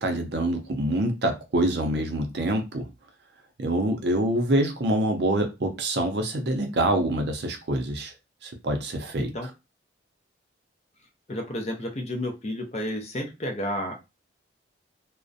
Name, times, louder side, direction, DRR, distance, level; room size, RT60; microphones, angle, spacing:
voice 1, 0.0-2.9 3.6-8.1 8.4-9.3, right 1 dB, 60° right, 5 dB, 0.5 m, -25 dB
voice 2, 11.3-14.0, left 1 dB, 35° left, 3 dB, 0.5 m, -31 dB
2.4 x 2.0 x 2.5 m, 0.25 s
head